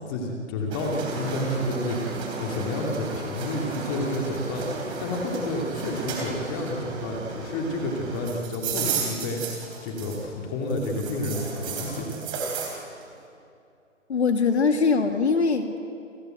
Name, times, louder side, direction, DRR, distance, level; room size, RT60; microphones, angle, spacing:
voice 1, 0.1-12.3, left 1 dB, 15° left, 0 dB, 2.5 m, -30 dB
sound 1, 0.7-10.4 10.7-12.8, right 4 dB, 10° right, 3.2 m, -34 dB
voice 2, 14.1-15.8, left 4 dB, 55° left, 6 dB, 2.5 m, -22 dB
29.0 x 20.0 x 9.1 m, 2.6 s
figure-of-eight pair, 160°, 40 cm